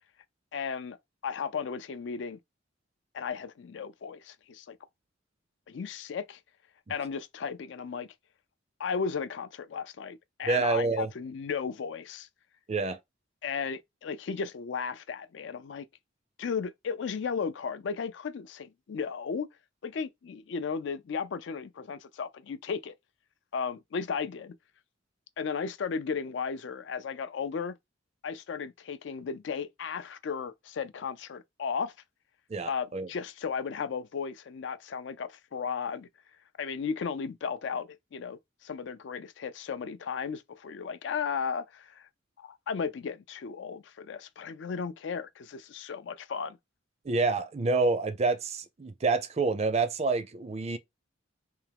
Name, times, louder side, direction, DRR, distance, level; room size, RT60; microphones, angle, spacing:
voice 1, 0.5-1.0 1.2-2.4 3.1-4.8 5.7-6.4 6.9-8.1 8.8-12.3 13.4-15.9 16.4-19.5 19.8-22.9 23.5-24.6 25.4-27.8 28.2-31.9 32.6-36.1 36.6-42.1 42.4-46.6, left 6 dB, 65° left, 0.4 m, -35 dB
voice 2, 10.5-11.1 12.7-13.0 32.5-33.1 47.0-50.8, right 3 dB, 35° right, 0.4 m, -28 dB
3.4 x 2.9 x 3.4 m
head